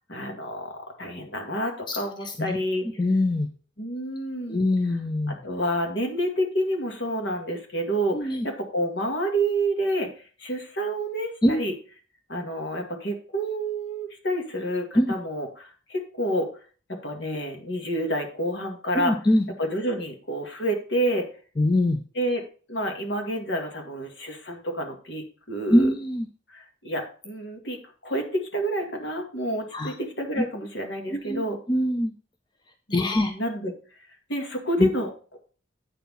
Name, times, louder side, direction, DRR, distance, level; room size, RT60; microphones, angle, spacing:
voice 1, 0.1-2.9 3.8-4.6 5.4-10.1 10.4-11.7 12.3-16.5 16.9-19.1 19.6-21.3 22.2-22.4 22.7-25.9 26.5-27.8 28.0-31.6 32.9-33.7 34.3-35.4, right 1 dB, 65° left, 3 dB, 2.0 m, -29 dB
voice 2, 3.0-3.5 4.5-5.4 8.1-8.5 11.4-11.6 14.9-15.1 19.0-19.4 21.6-22.0 25.7-26.3 29.7-29.9 31.1-32.1 32.9-33.3 34.8-34.9, left 1 dB, 25° left, 6 dB, 0.6 m, -23 dB
9.3 x 4.4 x 5.5 m, 0.39 s
head